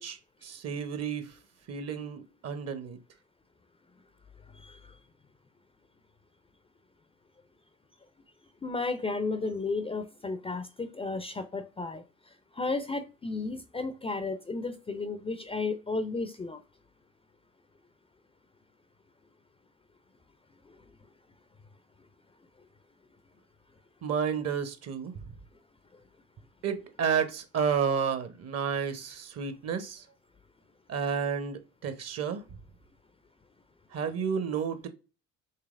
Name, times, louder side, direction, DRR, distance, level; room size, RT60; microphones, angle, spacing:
voice 1, 0.0-1.4 1.7-3.0 24.0-25.1 26.6-30.0 30.9-32.4 33.9-34.9, right 7 dB, 40° right, 0.9 m, -31 dB
voice 2, 4.5-4.9 8.6-12.0 12.5-16.6, left 3 dB, 15° left, 0.5 m, -33 dB
5.7 x 3.0 x 2.5 m
figure-of-eight pair, 50°, 39 cm